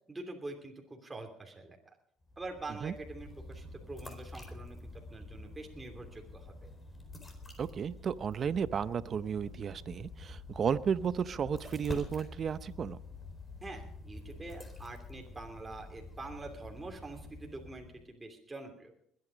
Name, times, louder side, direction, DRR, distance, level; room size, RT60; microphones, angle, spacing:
voice 1, 0.1-1.8 2.4-4.8 5.1-6.7 13.6-18.9, right 2 dB, 15° right, 1 dB, 3.0 m, -45 dB
sound 1, 2.2-18.1, left 2 dB, 20° left, 4.3 m, -48 dB
voice 2, 7.6-13.0, right 7 dB, 45° right, 16 dB, 0.7 m, -33 dB
21.0 x 9.6 x 5.1 m, 0.69 s
supercardioid pair, 75°, 0 cm